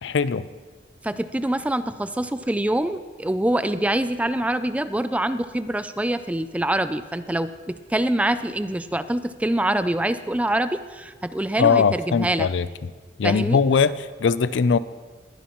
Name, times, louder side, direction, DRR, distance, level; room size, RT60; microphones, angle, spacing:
voice 1, 0.0-0.4 11.6-12.7 13.2-14.8, left 5 dB, 80° left, 16 dB, 0.4 m, -20 dB
voice 2, 1.0-12.5 13.2-13.6, right 1 dB, 10° right, 12 dB, 0.3 m, -25 dB
21.0 x 11.0 x 3.0 m, 1.4 s
head